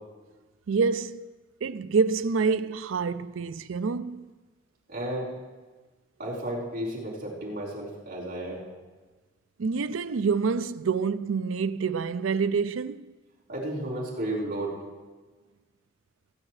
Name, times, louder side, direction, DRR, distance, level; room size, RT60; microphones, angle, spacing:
voice 1, 0.7-1.3 1.6-4.3 9.6-13.1, right 5 dB, 75° right, 0.4 m, -27 dB
voice 2, 4.9-5.3 6.2-8.7 13.5-14.7, right 1 dB, 55° right, 4.5 m, -33 dB
24.5 x 9.7 x 3.2 m
head